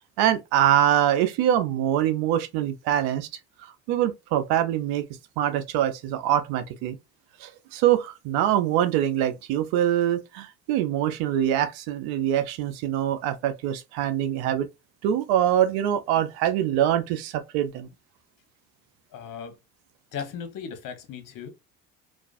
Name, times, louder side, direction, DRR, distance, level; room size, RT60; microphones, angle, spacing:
voice 1, 0.2-3.3 3.9-5.0 5.4-7.0 7.4-14.7 15.0-17.9, right 11 dB, 80° right, 0.5 m, -24 dB
voice 2, 19.1-19.5 20.1-21.5, left 7 dB, 55° left, 0.9 m, -36 dB
2.3 x 2.3 x 2.3 m
supercardioid pair, 65°, 38 cm